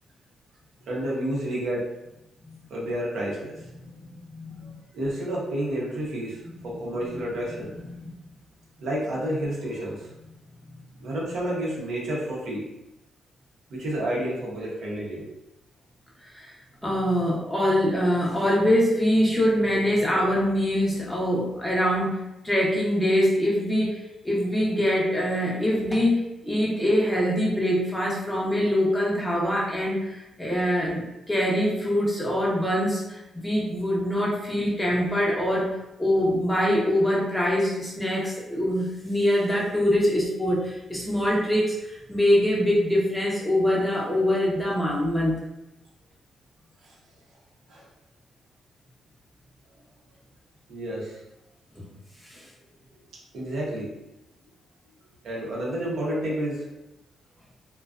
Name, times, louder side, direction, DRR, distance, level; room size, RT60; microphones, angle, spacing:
voice 1, 0.9-1.9 2.7-3.5 4.9-7.7 8.8-10.1 11.0-12.7 13.7-15.3 46.8-46.9 47.7-47.8 50.7-51.2 53.3-53.9 55.2-56.7, right 1 dB, 70° right, -5 dB, 0.8 m, -30 dB
voice 2, 3.8-4.7 6.6-6.7 7.1-7.2 7.8-8.1 16.3-16.6 16.8-45.4 51.8-51.9 52.2-52.5, equal, 10° left, -4 dB, 0.6 m, -24 dB
2.5 x 2.3 x 2.3 m, 0.92 s
cardioid pair, 135°, 0 cm